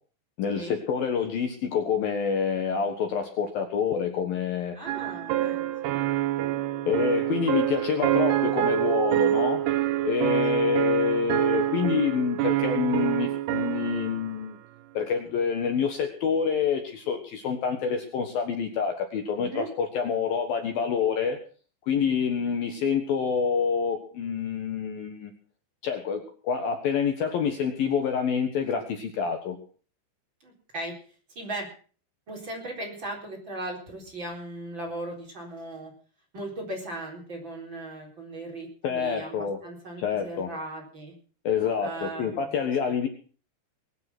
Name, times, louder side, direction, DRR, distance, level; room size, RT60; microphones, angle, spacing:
voice 1, 0.4-4.7 6.9-9.6 10.0-14.6 14.9-21.4 21.9-25.3 25.8-29.6 38.8-39.6 40.0-40.5 41.4-43.1, left 6 dB, 65° left, 5 dB, 2.8 m, -27 dB
voice 2, 4.7-5.9 19.4-19.7 30.4-30.9 31.3-31.7 32.3-35.9 36.3-41.1 41.8-42.6, right 2 dB, 25° right, -1 dB, 4.4 m, -38 dB
sound 1, 4.9-14.3, right 13 dB, 75° right, 2.8 m, -26 dB
21.0 x 9.6 x 6.1 m, 0.41 s
omnidirectional pair, 5.2 m